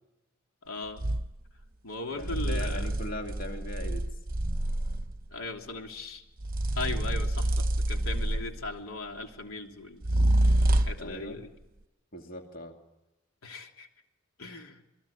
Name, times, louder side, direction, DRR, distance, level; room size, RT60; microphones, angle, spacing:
voice 1, 0.6-1.0 1.8-2.9 5.3-6.2 6.7-10.1 10.4-11.5 13.4-13.9 14.4-14.8, left 3 dB, 85° left, 3 dB, 3.1 m, -38 dB
sound 1, 1.0-1.3 2.2-5.2 6.4-8.7 10.0-11.1, right 1 dB, 45° right, 0.9 m, -27 dB
voice 2, 2.1-4.0 11.0-11.4 12.1-12.8, left 1 dB, 40° left, 3 dB, 2.6 m, -39 dB
27.5 x 22.0 x 8.6 m, 0.96 s
head